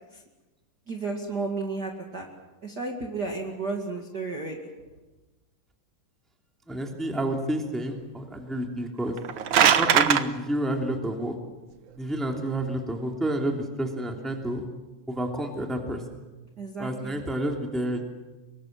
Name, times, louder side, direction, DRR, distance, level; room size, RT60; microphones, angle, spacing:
voice 1, 0.9-2.3 2.6-4.6 16.6-17.2, right 3 dB, 35° right, 1 dB, 2.3 m, -32 dB
voice 2, 6.7-9.2 9.6-11.3 12.0-14.6 15.1-16.0 16.8-18.0, right 1 dB, ahead, 2 dB, 2.4 m, -29 dB
sound 1, 9.1-10.2, right 8 dB, 90° right, 1.0 m, -20 dB
25.0 x 22.5 x 7.5 m, 1.1 s
omnidirectional pair, 3.8 m